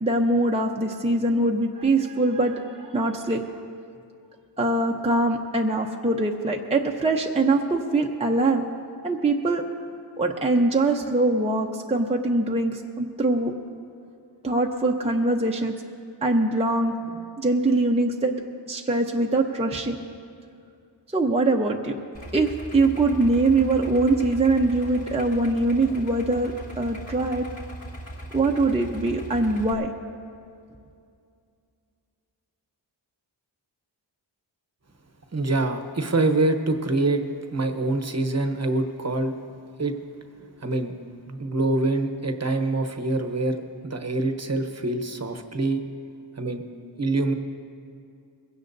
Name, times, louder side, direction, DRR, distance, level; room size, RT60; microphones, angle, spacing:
voice 1, 0.0-3.4 4.6-8.7 9.0-9.6 10.2-13.5 14.4-15.8 16.2-18.3 18.7-20.0 21.1-22.0 22.3-27.5 28.3-29.9, right 2 dB, 15° right, 1 dB, 0.7 m, -23 dB
Idling, 22.1-29.7, right 1 dB, 30° left, 1.8 m, -38 dB
voice 2, 35.3-37.2 37.5-39.3 39.8-39.9 40.6-40.9 41.3-43.6 43.8-45.8 46.4-46.6 47.0-47.3, right 2 dB, 35° right, 6 dB, 0.9 m, -25 dB
21.5 x 16.5 x 2.7 m, 2.4 s
wide cardioid pair, 95°, 45 cm